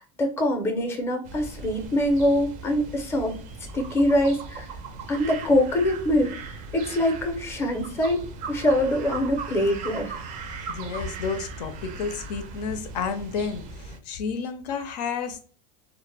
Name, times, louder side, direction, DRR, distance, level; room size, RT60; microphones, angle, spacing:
voice 1, 0.2-3.3 3.7-4.7 5.1-10.2, left 1 dB, 10° left, 4 dB, 0.5 m, -24 dB
sound 1, 1.2-14.0, right 4 dB, 40° right, 0.4 m, -38 dB
voice 2, 10.7-15.5, left 5 dB, 80° left, 8 dB, 0.5 m, -31 dB
2.1 x 2.0 x 3.2 m, 0.42 s
supercardioid pair, 130°, 21 cm